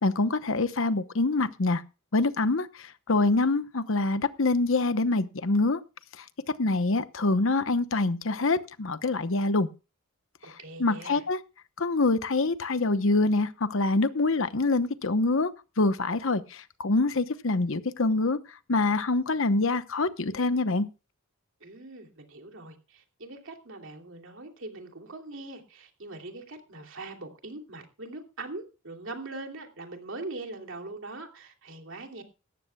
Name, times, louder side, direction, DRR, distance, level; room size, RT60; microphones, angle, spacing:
voice 1, 0.0-1.8 2.1-5.8 6.2-6.3 6.6-9.7 10.8-11.4 11.8-15.5 15.8-18.4 18.7-20.9, left 3 dB, 70° left, 1.0 m, -25 dB
voice 2, 10.4-11.2 21.6-32.2, right 2 dB, 65° right, 2.9 m, -42 dB
18.0 x 14.0 x 2.3 m
head